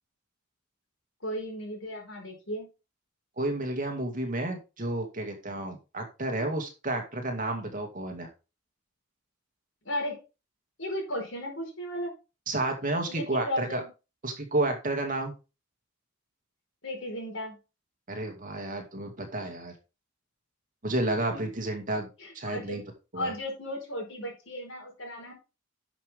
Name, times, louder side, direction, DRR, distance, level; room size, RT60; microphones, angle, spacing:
voice 1, 1.2-2.7 9.8-10.2 10.8-12.1 13.1-13.9 16.8-17.6 21.3-21.4 22.2-22.8 23.1-25.3, equal, 85° left, 2 dB, 4.7 m, -35 dB
voice 2, 3.4-8.3 12.5-13.8 14.2-15.3 18.1-19.7 20.8-22.1 22.3-22.8 23.1-23.3, right 2 dB, 45° right, 4 dB, 2.3 m, -31 dB
10.5 x 6.8 x 3.6 m, 0.30 s
head